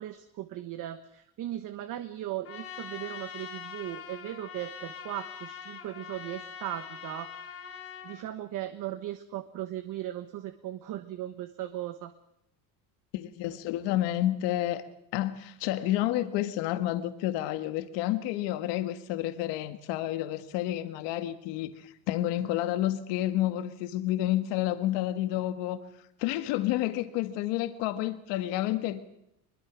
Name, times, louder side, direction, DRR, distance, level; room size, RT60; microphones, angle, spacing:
voice 1, 0.0-7.6 8.0-12.1, right 13 dB, 50° right, 1.3 m, -38 dB
Trumpet, 2.4-8.2, left 7 dB, 35° left, 3.1 m, -43 dB
voice 2, 13.1-14.8 15.1-25.8 26.2-29.1, left 14 dB, 80° left, 1.7 m, -30 dB
23.5 x 22.0 x 6.2 m
cardioid pair, 165°, 42 cm